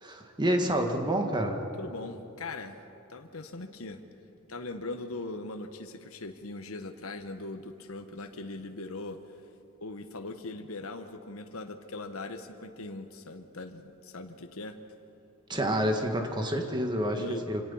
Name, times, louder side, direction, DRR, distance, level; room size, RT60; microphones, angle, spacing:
voice 1, 0.0-1.6 15.5-17.2 17.5-17.6, equal, 20° right, 4 dB, 1.7 m, -28 dB
voice 2, 1.8-2.8 3.1-4.0 4.5-9.2 9.8-14.8 17.1-17.5, left 2 dB, 85° left, 7 dB, 1.2 m, -40 dB
26.0 x 18.0 x 5.6 m, 2.8 s
head